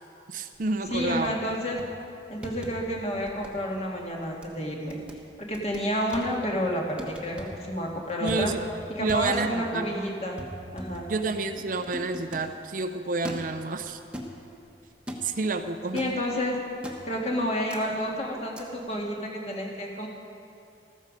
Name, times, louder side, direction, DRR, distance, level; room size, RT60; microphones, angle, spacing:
voice 1, 0.3-1.4 8.2-8.6 9.0-9.9 11.1-14.0 15.2-16.1, right 3 dB, 45° right, 8 dB, 0.5 m, -29 dB
sound 1, 0.6-1.5 1.8-2.0 2.4-3.0 3.3-3.6 4.0-4.5 4.9-5.2 5.5-6.3 7.0-7.6 8.1-8.7 9.1-9.7 9.9-10.0 10.4-12.6 13.2-13.6 14.1-14.6 15.1-15.4 16.0-16.2 16.8-17.2 17.7-17.8 18.6-18.7, equal, 5° right, 1.1 m, -41 dB
voice 2, 0.9-1.8 2.3-5.0 5.4-8.5 8.9-10.5 10.7-11.1 15.9-16.6 17.0-20.1, equal, 35° left, -1 dB, 1.9 m, -30 dB
13.5 x 13.5 x 5.2 m, 2.7 s
head